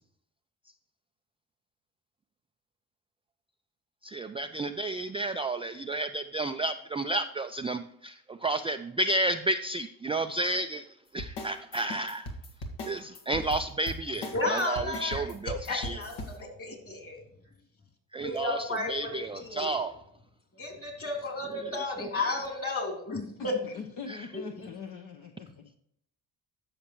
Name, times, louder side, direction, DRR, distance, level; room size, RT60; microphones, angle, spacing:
voice 1, 4.0-10.9 11.1-12.3 12.9-16.0 18.1-19.9 24.1-24.2, right 2 dB, 15° right, 8 dB, 0.3 m, -31 dB
sound 1, 11.2-16.3, left 1 dB, 70° left, 1.8 m, -38 dB
voice 2, 14.3-15.3 15.6-17.2 18.2-19.7 20.5-23.6 24.3-24.4, left 2 dB, 35° left, 3 dB, 3.3 m, -33 dB
voice 3, 23.4-25.8, left 5 dB, 50° left, 4 dB, 0.9 m, -42 dB
13.0 x 5.8 x 3.1 m, 0.74 s
supercardioid pair, 65°, 41 cm